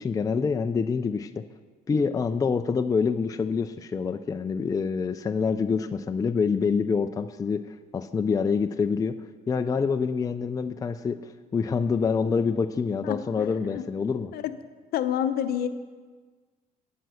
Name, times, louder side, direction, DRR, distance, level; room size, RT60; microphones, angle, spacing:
voice 1, 0.0-1.4 1.9-7.6 7.9-9.2 9.5-14.3, left 5 dB, 20° left, 9 dB, 0.4 m, -26 dB
voice 2, 14.9-15.7, left 10 dB, 65° left, 10 dB, 0.8 m, -27 dB
9.3 x 9.2 x 6.3 m, 1.4 s
cardioid pair, 110°, 17 cm